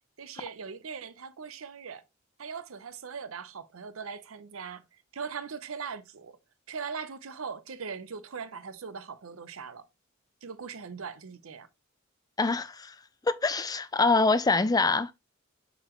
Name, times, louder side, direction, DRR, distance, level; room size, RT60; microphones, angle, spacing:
voice 1, 0.2-2.0 2.4-6.4 6.7-9.9 10.4-11.7, right 6 dB, 85° right, 0.7 m, -40 dB
voice 2, 12.4-12.9 13.2-15.1, left 3 dB, 20° left, 0.4 m, -25 dB
7.7 x 4.1 x 3.0 m
head